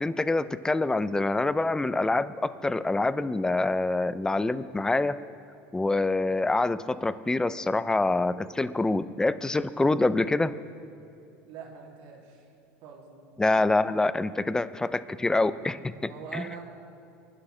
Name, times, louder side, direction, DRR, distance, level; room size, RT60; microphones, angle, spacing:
voice 1, 0.0-5.2 5.7-10.5 13.4-16.4, left 2 dB, 10° left, 14 dB, 0.5 m, -26 dB
voice 2, 11.4-12.5 12.8-13.3 16.0-16.6, right 7 dB, 65° right, -2 dB, 2.8 m, -43 dB
26.0 x 11.5 x 3.3 m, 2.5 s
supercardioid pair, 95°, 7 cm